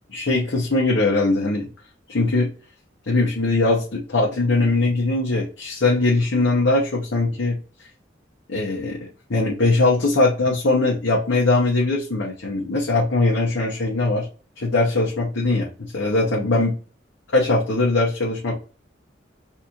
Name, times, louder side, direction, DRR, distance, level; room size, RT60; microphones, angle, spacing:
voice 1, 0.1-1.7 2.1-2.5 3.1-7.6 8.5-9.0 9.3-14.3 14.6-16.7 17.3-18.5, left 2 dB, 85° left, -4 dB, 1.0 m, -21 dB
4.2 x 2.8 x 2.4 m, 0.36 s
head